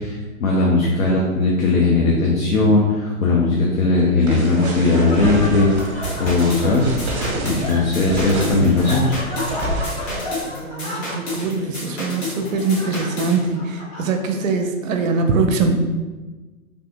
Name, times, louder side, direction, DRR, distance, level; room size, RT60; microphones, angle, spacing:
voice 1, 0.0-6.9 7.4-9.2, left 3 dB, 70° left, -3 dB, 0.8 m, -18 dB
Laughter, 3.9-14.5, left 1 dB, 15° left, 0.8 m, -33 dB
sound 1, 4.2-10.2, right 1 dB, 50° right, 0.9 m, -29 dB
sound 2, 5.8-13.4, left 2 dB, 50° left, 1.4 m, -31 dB
voice 2, 10.6-15.8, right 4 dB, 65° right, 5 dB, 0.6 m, -22 dB
3.4 x 2.7 x 2.5 m, 1.2 s
hypercardioid pair, 125°, 43 cm